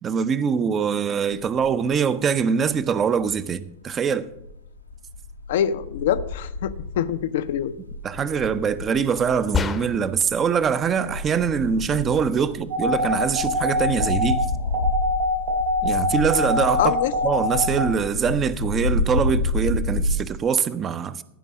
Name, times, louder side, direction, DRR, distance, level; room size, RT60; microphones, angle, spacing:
voice 1, 0.0-4.3 8.0-14.5 15.8-16.9 17.2-21.2, right 6 dB, 25° right, 0.5 m, -23 dB
sound 1, 1.3-1.9 2.3-3.7 4.1-20.1, left 2 dB, 85° left, 0.8 m, -30 dB
voice 2, 5.5-7.7 16.8-17.1, left 10 dB, 55° left, 0.5 m, -24 dB
sound 2, 9.5-10.3, left 6 dB, 20° left, 0.7 m, -26 dB
sound 3, 12.7-17.8, equal, 70° right, 2.3 m, -24 dB
14.0 x 5.3 x 6.0 m
figure-of-eight pair, 90°, 0 cm